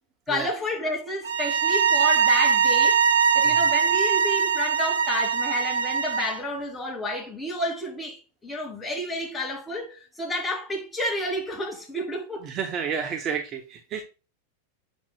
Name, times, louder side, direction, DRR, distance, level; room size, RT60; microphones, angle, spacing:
voice 1, 0.3-3.0 3.3-12.5 13.9-14.0, left 1 dB, 10° left, 2.4 m, -31 dB
sound 1, 1.2-6.4, right 6 dB, 65° right, 0.6 m, -21 dB
voice 2, 12.5-14.0, right 6 dB, 30° right, 0.7 m, -30 dB
7.2 x 6.2 x 2.3 m
figure-of-eight pair, 90°, 0 cm